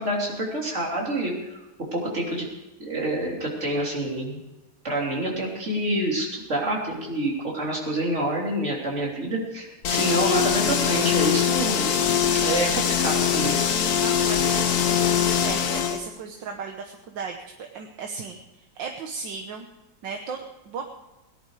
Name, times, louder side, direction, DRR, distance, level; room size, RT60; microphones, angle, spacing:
voice 1, 0.0-1.6 1.9-2.5 2.8-4.4 4.8-11.9 12.4-13.6, right 1 dB, 40° right, -2 dB, 3.6 m, -27 dB
sound 1, 9.8-16.0, left 8 dB, 60° left, 1.4 m, -22 dB
voice 2, 14.0-19.7 20.0-20.8, right 5 dB, 85° right, 3 dB, 1.8 m, -36 dB
18.0 x 11.0 x 4.9 m, 1.0 s
omnidirectional pair, 2.0 m